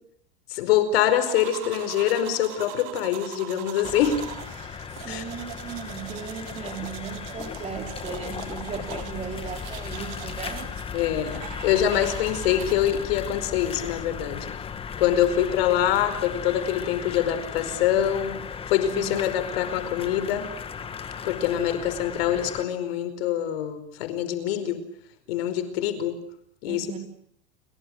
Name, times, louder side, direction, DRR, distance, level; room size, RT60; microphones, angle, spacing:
voice 1, 0.5-4.2 5.1-5.2 10.9-14.5 15.0-20.5 21.2-24.8 25.3-26.2 26.6-27.0, left 10 dB, 65° left, 11 dB, 5.0 m, -25 dB
sound 1, 1.2-13.1, right 14 dB, 55° right, 3.7 m, -42 dB
sound 2, 3.8-22.6, left 7 dB, 15° left, 1.8 m, -36 dB
voice 2, 5.0-10.7 18.9-19.1 19.5-19.6 26.7-27.0, right 7 dB, 20° right, 5 dB, 4.8 m, -37 dB
30.0 x 23.0 x 6.6 m, 0.69 s
supercardioid pair, 150°, 33 cm